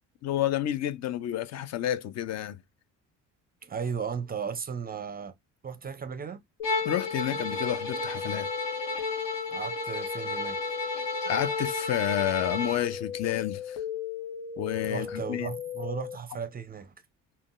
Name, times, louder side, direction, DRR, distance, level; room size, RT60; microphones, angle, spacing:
voice 1, 0.2-2.6 6.8-8.5 11.3-13.8 14.6-15.5, left 12 dB, 45° left, 0.5 m, -30 dB
voice 2, 3.6-5.3 5.6-6.4 9.5-10.7 14.8-16.9, right 6 dB, 25° right, 0.5 m, -35 dB
sound 1, 6.6-16.2, left 8 dB, 80° left, 0.8 m, -37 dB
Bowed string instrument, 6.6-12.9, left 2 dB, 65° left, 1.2 m, -33 dB
3.6 x 2.2 x 2.4 m
supercardioid pair, 70°, 37 cm